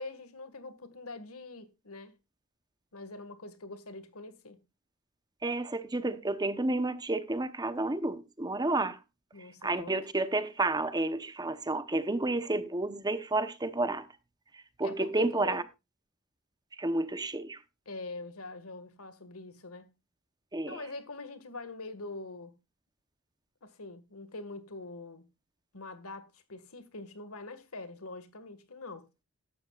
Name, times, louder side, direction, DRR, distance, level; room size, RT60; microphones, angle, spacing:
voice 1, 0.0-2.2 2.9-4.6 9.3-9.9 14.8-15.6 17.9-19.9 20.7-22.5 23.6-25.2 25.7-29.1, left 3 dB, 70° left, 1.8 m, -44 dB
voice 2, 5.4-9.0 9.6-14.1 14.8-15.6 16.8-17.6 20.5-20.8, right 2 dB, 20° right, 0.9 m, -30 dB
14.0 x 12.0 x 2.4 m
head